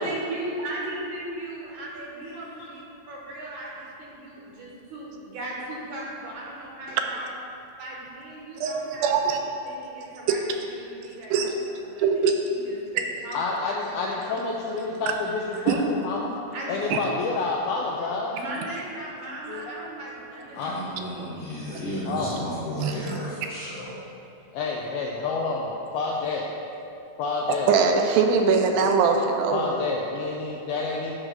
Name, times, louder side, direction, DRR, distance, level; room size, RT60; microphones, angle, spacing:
voice 1, 0.0-7.4 7.8-9.1 9.4-10.4 10.7-11.6 11.8-14.4 14.7-15.1 15.4-15.7 16.5-16.8 18.3-21.1, right 1 dB, 70° right, -3 dB, 2.0 m, -37 dB
voice 2, 9.0-9.4 11.3-11.5 12.0-12.3 15.7-15.8 16.9-17.0 22.8-23.2 27.7-29.7, right 5 dB, 90° right, 4 dB, 2.4 m, -21 dB
voice 3, 13.3-16.4 16.7-18.4 19.5-19.6 20.5-20.7 22.1-22.3 24.5-26.5 27.2-27.7 29.5-31.1, left 3 dB, 85° left, -2 dB, 1.8 m, -29 dB
voice 4, 20.5-23.9, equal, 50° left, -10 dB, 1.9 m, -34 dB
8.8 x 3.2 x 6.2 m, 2.8 s
omnidirectional pair, 4.1 m